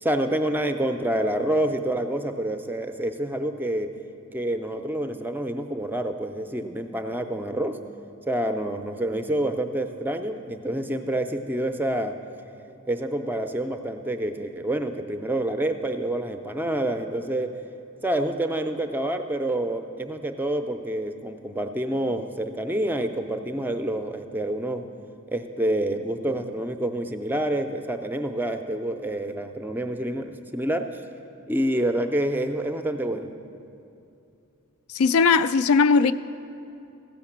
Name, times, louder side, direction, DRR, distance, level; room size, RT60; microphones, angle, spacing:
voice 1, 0.0-3.9 4.3-7.8 8.3-12.2 12.9-17.5 18.0-24.9 25.3-31.0 31.5-33.3, right 1 dB, 10° right, 0.4 m, -27 dB
voice 2, 34.9-36.1, left 5 dB, 85° left, 0.4 m, -18 dB
15.0 x 5.8 x 7.2 m
head